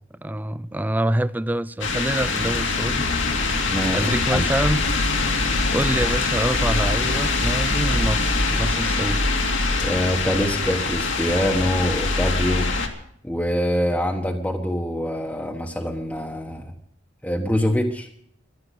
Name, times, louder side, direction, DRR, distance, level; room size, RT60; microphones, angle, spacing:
voice 1, 0.2-3.1 3.5-3.6 3.9-4.8 5.7-9.2, right 1 dB, 10° right, 0.5 m, -26 dB
sound 1, 1.8-12.9, left 3 dB, 75° left, 2.3 m, -23 dB
sound 2, 2.1-10.2, right 1 dB, 80° right, 2.2 m, -35 dB
voice 2, 3.7-4.5 9.8-12.7 13.2-16.7 17.2-18.1, equal, 10° left, 1.3 m, -24 dB
14.5 x 11.5 x 6.8 m
head